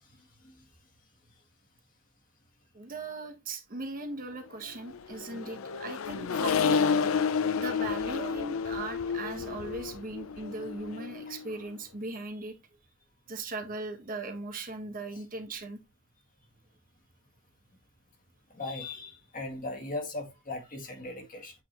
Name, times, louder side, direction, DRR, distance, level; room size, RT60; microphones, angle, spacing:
voice 1, 2.7-6.9 7.5-12.5 13.3-15.8, right 3 dB, 45° right, 1.1 m, -39 dB
Accelerating revving vroom, 4.9-11.6, left 6 dB, 90° left, 0.5 m, -30 dB
voice 2, 18.5-21.5, left 2 dB, 45° left, 2.0 m, -38 dB
8.3 x 3.8 x 3.0 m
head